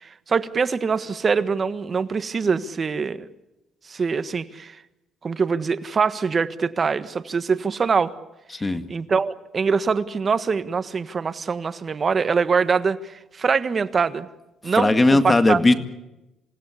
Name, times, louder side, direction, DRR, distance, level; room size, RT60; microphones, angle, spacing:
voice 1, 0.0-3.3 3.9-4.8 5.2-8.1 8.6-14.3 14.6-15.6, right 5 dB, 35° right, 12 dB, 1.5 m, -24 dB
voice 2, 14.8-15.8, left 2 dB, 20° left, 9 dB, 2.0 m, -17 dB
28.0 x 17.0 x 8.5 m, 0.94 s
cardioid pair, 105°, 0 cm